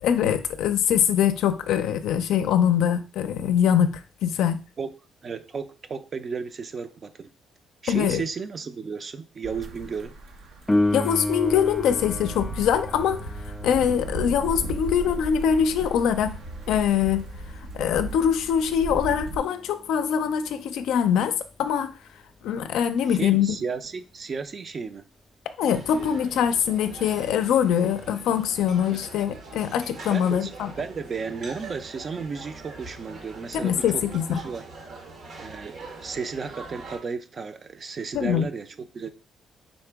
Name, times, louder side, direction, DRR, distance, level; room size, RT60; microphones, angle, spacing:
voice 1, 0.0-4.6 7.9-8.2 10.9-13.2 13.6-16.3 16.7-17.3 17.7-21.3 21.6-21.9 22.4-23.6 25.6-30.7 33.5-34.4 38.1-38.5, left 8 dB, 85° left, 0.4 m, -23 dB
voice 2, 5.2-7.3 7.8-10.1 23.1-25.0 28.9-29.1 30.1-30.5 30.8-34.0 34.3-34.6 35.4-39.1, right 5 dB, 45° right, 0.5 m, -34 dB
sound 1, 9.4-19.4, right 2 dB, 90° right, 0.9 m, -36 dB
Piano, 10.7-21.1 28.6-28.7, left 1 dB, 10° left, 0.3 m, -33 dB
sound 2, 25.7-37.0, right 3 dB, 75° right, 1.3 m, -43 dB
4.1 x 2.9 x 3.4 m
cardioid pair, 90°, 0 cm